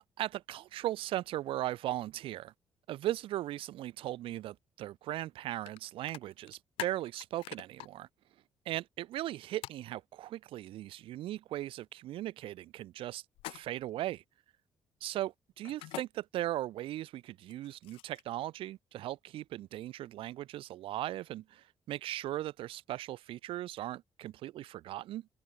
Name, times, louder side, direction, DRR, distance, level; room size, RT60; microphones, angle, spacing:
voice 1, 0.0-2.5 2.9-8.1 8.6-14.2 15.0-25.3, right 14 dB, 60° right, 2.7 m, -38 dB
sound 1, 5.7-5.8 6.1-7.9 9.6-9.8 13.3-13.9 15.6-16.1 17.4-18.3, left 18 dB, 65° left, 1.2 m, -43 dB
open air
figure-of-eight pair, 40°, 10 cm